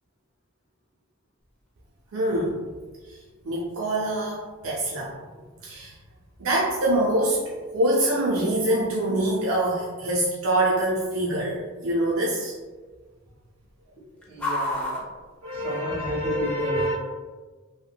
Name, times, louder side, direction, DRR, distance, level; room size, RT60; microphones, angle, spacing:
sound 1, 1.4-16.2, left 1 dB, 5° left, 0.4 m, -41 dB
voice 1, 2.1-2.6 3.1-3.2 3.4-5.1 5.6-5.9 6.4-12.5 15.4-16.9, right 1 dB, 75° right, -4 dB, 0.4 m, -25 dB
voice 2, 14.0-15.1 15.5-16.9, right 1 dB, 45° right, -5 dB, 1.0 m, -33 dB
3.4 x 2.1 x 2.2 m, 1.4 s
head